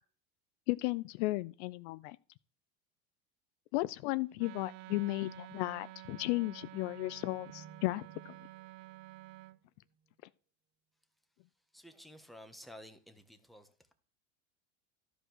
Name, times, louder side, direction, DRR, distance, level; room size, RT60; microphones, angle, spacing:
voice 1, 0.7-2.2 3.7-8.3, left 21 dB, 60° left, 0.5 m, -35 dB
Wind instrument woodwind instrument, 4.4-9.6, right 19 dB, 60° right, 0.5 m, -51 dB
sound 1, 6.7-10.2, right 7 dB, 30° right, 1.4 m, -60 dB
voice 2, 11.7-13.9, equal, ahead, 1.4 m, -53 dB
12.5 x 5.1 x 6.2 m
supercardioid pair, 105°, 36 cm